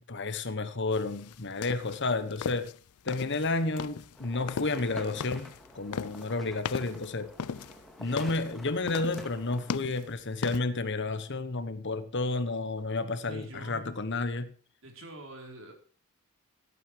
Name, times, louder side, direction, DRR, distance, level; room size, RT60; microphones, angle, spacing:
voice 1, 0.1-2.7 3.0-5.5 5.7-7.3 8.0-14.5, left 3 dB, 50° left, 1.2 m, -31 dB
sound 1, 0.9-10.6, left 6 dB, 85° left, 0.5 m, -38 dB
sound 2, 4.1-9.7, equal, ahead, 2.2 m, -48 dB
voice 2, 13.2-13.9 14.8-15.7, right 2 dB, 60° right, 4.5 m, -45 dB
17.0 x 9.4 x 4.8 m
head